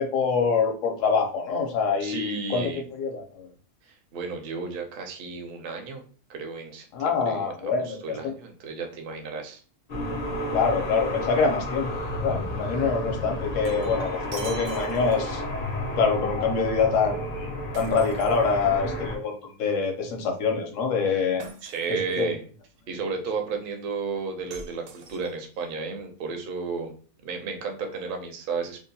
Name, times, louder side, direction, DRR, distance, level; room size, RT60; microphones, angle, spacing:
voice 1, 0.0-3.5 6.9-8.3 10.5-11.9 12.2-15.4 16.0-21.4 21.9-22.3, left 5 dB, 70° left, 3 dB, 1.0 m, -25 dB
voice 2, 2.0-2.8 3.8-6.0 6.3-9.6 21.1-21.2 21.6-22.4 22.9-26.9 27.2-28.8, right 5 dB, 60° right, 3 dB, 0.6 m, -33 dB
sound 1, 9.9-19.2, left 1 dB, 45° left, 0.5 m, -31 dB
Shatter, 13.4-15.5 17.7-19.0 21.4-22.2 24.5-25.6, right 3 dB, 75° right, 1.0 m, -43 dB
2.7 x 2.2 x 2.7 m, 0.39 s
omnidirectional pair, 1.5 m